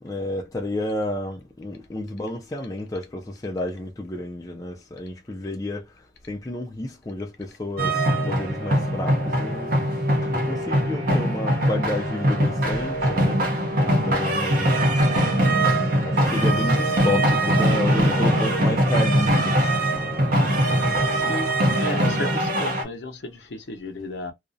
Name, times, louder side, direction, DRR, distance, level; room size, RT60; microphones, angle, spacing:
voice 1, 0.0-5.9 6.3-13.4 13.9-14.8 16.0-19.9, left 1 dB, 15° left, 0.4 m, -31 dB
sound 1, 7.8-22.8, right 1 dB, 45° right, 0.7 m, -22 dB
voice 2, 21.2-24.3, left 1 dB, 60° left, 0.6 m, -34 dB
2.4 x 2.0 x 2.6 m
head